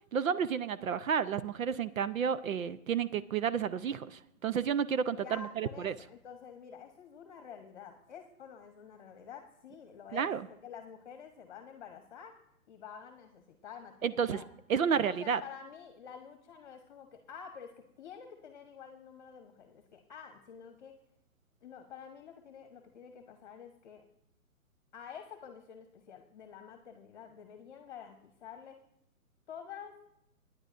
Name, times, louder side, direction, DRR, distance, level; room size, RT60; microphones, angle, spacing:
voice 1, 0.1-5.9 10.1-10.4 14.0-14.4 14.7-15.4, right 7 dB, 70° right, 14 dB, 0.7 m, -31 dB
voice 2, 5.1-12.4 12.7-14.5 14.9-20.9 21.6-24.0 24.9-28.8 29.5-30.0, left 7 dB, 35° left, 5 dB, 1.1 m, -49 dB
21.0 x 9.9 x 2.6 m, 0.81 s
hypercardioid pair, 160°, 43 cm